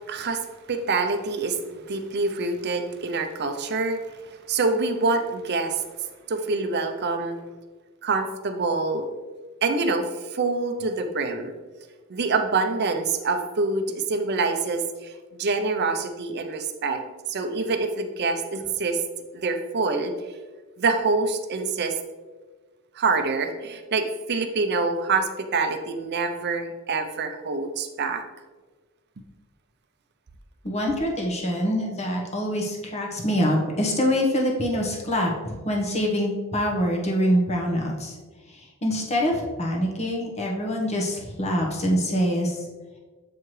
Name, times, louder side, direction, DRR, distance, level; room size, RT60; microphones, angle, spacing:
voice 1, 0.1-0.4 0.7-5.8 6.3-7.4 8.0-9.1 9.6-11.5 12.1-15.1 15.4-17.0 17.3-19.0 19.3-20.1 20.8-22.0 22.9-28.2, right 3 dB, 50° right, 7 dB, 0.6 m, -26 dB
voice 2, 30.6-38.2 38.5-42.6, equal, 30° left, 0 dB, 1.1 m, -25 dB
7.4 x 4.6 x 3.2 m, 1.3 s
head